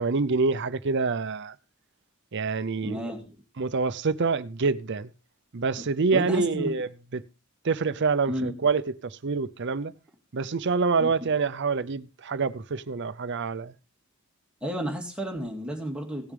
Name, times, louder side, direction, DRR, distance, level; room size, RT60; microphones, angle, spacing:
voice 1, 0.0-1.5 2.3-3.0 3.6-5.1 5.5-7.2 7.6-9.9 10.3-13.7, right 4 dB, 55° right, 0.6 m, -26 dB
voice 2, 2.8-3.4 6.1-6.7 8.3-8.5 11.0-11.1 14.6-16.3, equal, 5° right, 2.2 m, -32 dB
17.5 x 7.0 x 3.4 m
head